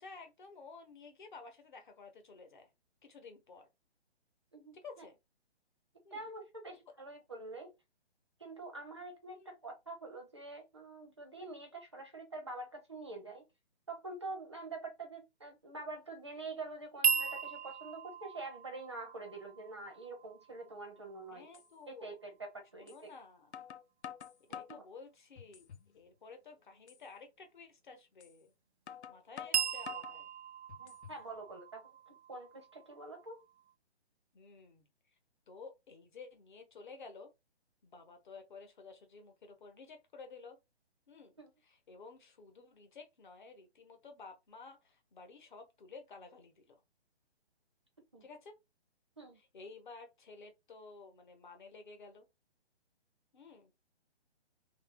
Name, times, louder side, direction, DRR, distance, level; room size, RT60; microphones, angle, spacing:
voice 1, 0.0-2.7 3.0-3.7 4.7-5.2 6.0-6.2 9.3-9.5 21.3-22.2 22.8-23.5 24.5-25.7 25.9-28.5 29.1-30.3 34.3-34.9 35.5-37.3 37.8-40.6 41.1-41.3 41.6-46.8 48.2-48.6 49.3-52.3 53.3-53.7, left 4 dB, 45° left, 1.0 m, -53 dB
voice 2, 4.5-5.0 6.1-7.7 8.4-13.4 13.9-21.5 21.9-23.1 24.5-24.8 30.8-31.8 32.1-33.4 41.4-41.5 48.1-48.2 49.2-49.4, right 2 dB, 25° right, 0.5 m, -46 dB
sound 1, 17.0-21.1 29.5-33.3, right 7 dB, 80° right, 0.5 m, -37 dB
sound 2, 21.0-21.1 21.5-21.7 22.9-23.0 23.5-24.9 25.4-25.9 26.3-26.4 26.9-27.0 28.2-28.3 28.9-30.2 30.7-31.2, left 8 dB, 80° left, 0.6 m, -48 dB
3.0 x 2.6 x 3.5 m
hypercardioid pair, 165°, 33 cm